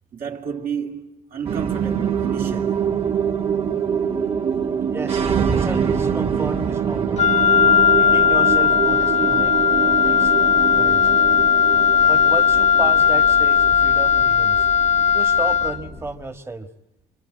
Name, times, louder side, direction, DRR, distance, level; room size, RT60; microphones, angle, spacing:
voice 1, 0.1-2.9, right 7 dB, 55° right, 2.7 m, -31 dB
sound 1, 1.4-16.0, right 7 dB, 35° right, 2.2 m, -25 dB
voice 2, 3.8-4.2 4.9-7.3 7.9-9.5 9.8-10.3 10.7-11.1 12.0-14.7 15.1-16.7, right 3 dB, 15° right, 1.6 m, -33 dB
Wind instrument woodwind instrument, 7.2-15.9, left 7 dB, 40° left, 1.1 m, -17 dB
27.5 x 24.0 x 8.7 m
cardioid pair, 110°, 17 cm